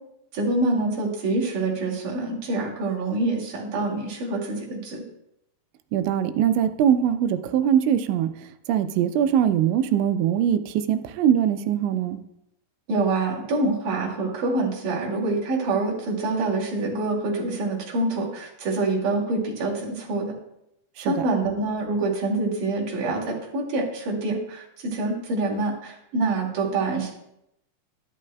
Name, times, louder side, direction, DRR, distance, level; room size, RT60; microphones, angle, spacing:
voice 1, 0.3-5.0 12.9-20.4 21.0-27.1, right 2 dB, 50° right, -3 dB, 3.5 m, -26 dB
voice 2, 5.9-8.3 8.7-12.2 21.0-21.2, right 9 dB, 85° right, 10 dB, 3.0 m, -22 dB
12.0 x 11.5 x 2.3 m, 0.82 s
omnidirectional pair, 5.3 m